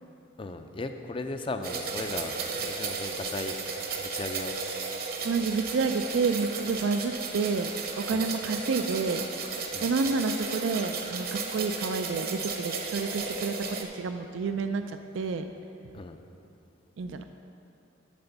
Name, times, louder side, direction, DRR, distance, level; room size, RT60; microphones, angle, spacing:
voice 1, 0.4-3.6 4.0-4.6 8.1-8.3 9.7-9.9 15.9-16.2, left 2 dB, 25° left, 7 dB, 0.4 m, -36 dB
sound 1, 1.6-13.8, right 4 dB, 50° right, 0.9 m, -34 dB
voice 2, 5.2-7.7 8.0-9.3 9.8-15.4 17.0-17.2, right 4 dB, 75° right, 8 dB, 0.4 m, -29 dB
11.5 x 4.3 x 6.9 m, 2.7 s
head